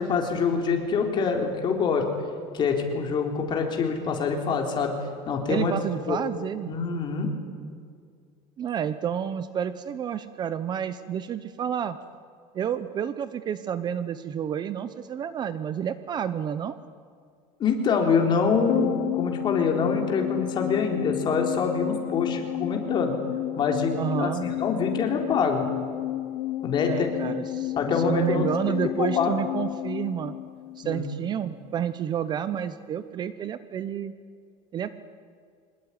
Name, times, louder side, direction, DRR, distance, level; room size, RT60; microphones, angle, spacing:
voice 1, 0.0-2.0 2.5-4.9 5.3-5.8 6.1-6.2 6.7-7.3 17.6-23.1 23.6-25.7 26.6-27.1 27.8-28.4 29.0-29.3 30.8-31.1, left 5 dB, 30° left, 2 dB, 3.9 m, -25 dB
voice 2, 5.5-6.7 8.6-12.0 12.5-16.8 24.0-24.5 26.9-30.3 30.8-34.1 34.7-35.0, right 9 dB, 30° right, 13 dB, 0.8 m, -30 dB
sound 1, 18.7-31.2 31.5-31.6, left 15 dB, 70° left, 0.9 m, -31 dB
25.0 x 20.0 x 10.0 m, 2.2 s
cardioid pair, 160°, 15 cm